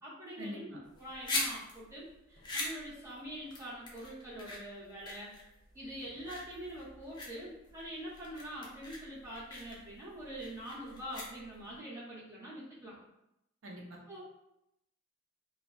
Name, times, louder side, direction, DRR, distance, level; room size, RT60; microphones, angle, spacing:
voice 1, 0.0-5.3 5.7-13.0 14.1-14.2, equal, 15° right, -8 dB, 0.8 m, -44 dB
sound 1, 0.9-11.8, left 2 dB, 25° left, 0.4 m, -42 dB
voice 2, 13.6-14.2, equal, 85° right, -1 dB, 0.5 m, -44 dB
2.5 x 2.1 x 2.3 m, 0.85 s
head